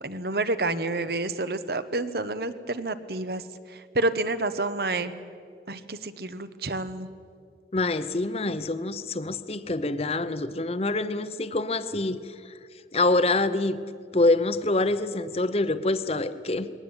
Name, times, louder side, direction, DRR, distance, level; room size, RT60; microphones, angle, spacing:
voice 1, 0.0-3.4 3.7-5.1 5.7-7.1, right 2 dB, 60° right, 12 dB, 1.0 m, -29 dB
voice 2, 7.7-12.5 12.9-13.8 14.1-16.7, left 2 dB, 35° left, 12 dB, 0.8 m, -26 dB
21.5 x 18.5 x 8.8 m, 2.3 s
head